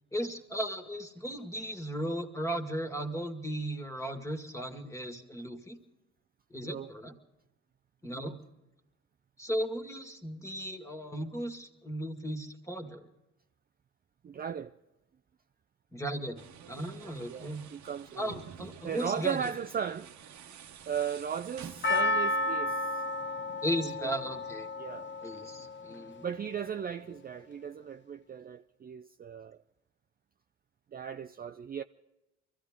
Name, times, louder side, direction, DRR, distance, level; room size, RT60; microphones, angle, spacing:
voice 1, 0.1-5.8 6.5-7.1 8.0-8.4 9.4-13.0 15.9-17.6 18.2-19.4 23.6-24.7 25.2-26.3, equal, 10° left, 1.9 m, -36 dB
voice 2, 14.2-14.7 17.2-18.4 18.8-20.1 20.9-23.0 23.8-24.2 24.8-25.1 26.2-29.6 30.9-31.8, right 8 dB, 30° right, 0.4 m, -37 dB
sound 1, 16.4-22.0, right 8 dB, 70° right, 1.1 m, -49 dB
Percussion, 21.8-26.2 26.5-26.6, left 1 dB, 40° left, 0.8 m, -32 dB
24.0 x 15.0 x 3.7 m
cardioid pair, 90°, 30 cm